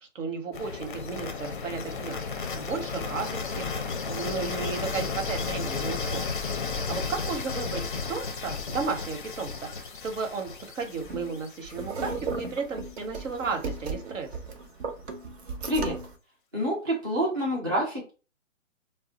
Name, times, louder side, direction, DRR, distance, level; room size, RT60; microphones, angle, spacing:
voice 1, 0.1-2.2 2.5-6.2 6.7-7.8 8.1-14.3, right 5 dB, 75° right, 5 dB, 1.0 m, -34 dB
sound 1, 0.5-12.5, left 5 dB, 40° left, 0.5 m, -34 dB
sound 2, 11.0-16.1, right 4 dB, 55° right, 0.7 m, -36 dB
voice 2, 16.5-18.1, equal, 20° right, -5 dB, 0.4 m, -27 dB
2.3 x 2.0 x 3.7 m, 0.34 s
hypercardioid pair, 155°, 39 cm